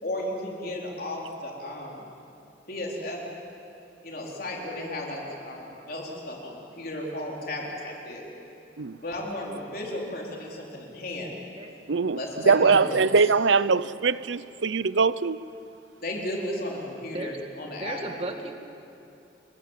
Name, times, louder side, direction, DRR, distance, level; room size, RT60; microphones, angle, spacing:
voice 1, 0.0-2.1 2.7-3.2 4.0-8.3 9.0-11.3 12.1-13.1 16.0-18.0, left 1 dB, 50° left, 4.4 m, -34 dB
voice 2, 11.9-12.2 12.5-15.4, right 4 dB, 75° right, 0.6 m, -22 dB
voice 3, 17.6-18.5, right 2 dB, 30° right, 2.0 m, -35 dB
29.5 x 23.5 x 7.6 m
head